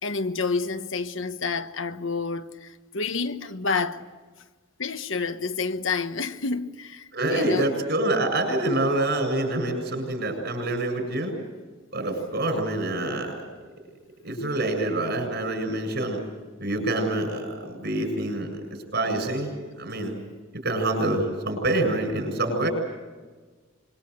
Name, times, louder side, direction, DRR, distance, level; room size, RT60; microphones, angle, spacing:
voice 1, 0.0-4.0 4.8-7.7, left 4 dB, 70° left, 1.1 m, -29 dB
voice 2, 7.1-11.3 11.9-13.4 14.2-16.2 16.6-20.2 20.5-22.7, right 2 dB, 55° right, 7.4 m, -26 dB
26.0 x 23.0 x 8.0 m
head